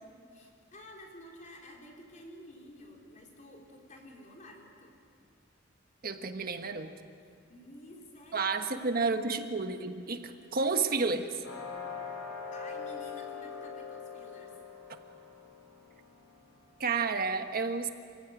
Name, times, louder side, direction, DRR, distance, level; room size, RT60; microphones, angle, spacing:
voice 1, 0.3-4.9 7.2-9.5 12.1-14.6, left 1 dB, 40° left, 0 dB, 4.1 m, -52 dB
voice 2, 6.0-6.9 8.3-11.4 16.8-17.9, right 4 dB, 50° right, 6 dB, 1.5 m, -31 dB
sound 1, 11.4-17.1, left 5 dB, 75° left, 7.2 m, -43 dB
28.0 x 16.0 x 9.2 m, 2.4 s
head